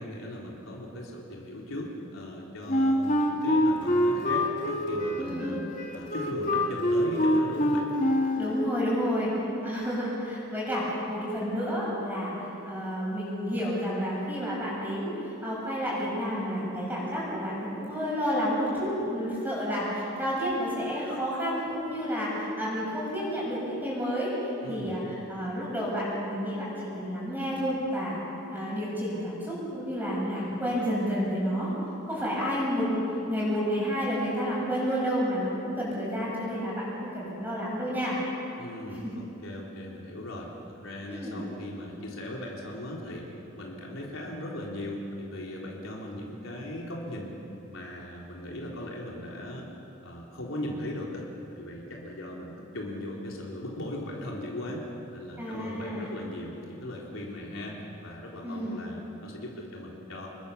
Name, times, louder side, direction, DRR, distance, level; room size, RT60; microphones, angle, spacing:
voice 1, 0.0-5.6 5.9-7.9 24.6-25.0 38.6-47.4 47.7-49.6 50.0-51.2 51.5-60.3, left 1 dB, 85° left, -3 dB, 4.0 m, -38 dB
Wind instrument woodwind instrument, 2.7-8.6, left 1 dB, 40° left, 3.0 m, -25 dB
voice 2, 5.2-5.6 8.4-9.3 9.6-12.3 12.6-15.1 15.4-24.4 24.7-25.0 25.3-28.2 28.5-31.7 32.1-38.2 39.0-39.1 41.1-41.5 55.4-56.1 58.4-58.8, equal, 10° right, -7 dB, 7.5 m, -30 dB
28.0 x 21.5 x 7.1 m, 2.9 s
head